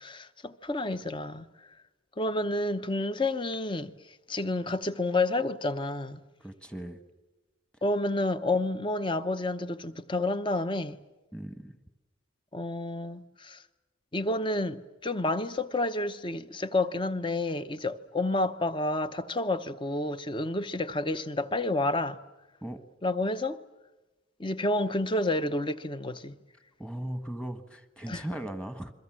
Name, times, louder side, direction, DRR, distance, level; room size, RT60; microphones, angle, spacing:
voice 1, 0.0-1.5 2.2-3.9 4.3-6.2 7.8-11.0 12.5-13.6 14.1-22.2 23.0-23.6 24.4-26.3 28.1-28.2, left 2 dB, 25° left, 0.9 m, -30 dB
voice 2, 6.4-7.0 11.3-11.8 22.6-22.8 26.8-28.9, right 1 dB, 5° left, 1.4 m, -38 dB
30.0 x 23.0 x 7.6 m
head